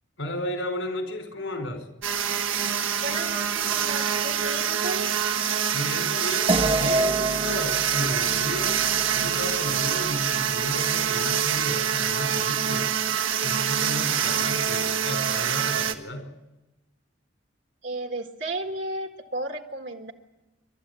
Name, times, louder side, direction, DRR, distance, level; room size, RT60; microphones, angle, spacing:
voice 1, 0.2-1.9 5.7-8.8 9.1-12.9 13.4-16.3, left 1 dB, 80° left, 5 dB, 5.1 m, -33 dB
sound 1, 2.0-15.9, right 8 dB, 85° right, 1.5 m, -25 dB
voice 2, 3.0-5.0 17.8-20.1, right 2 dB, 65° right, 3 dB, 1.7 m, -33 dB
sound 2, 6.5-11.2, right 1 dB, 30° right, 0.9 m, -29 dB
27.5 x 13.0 x 8.4 m, 1.0 s
head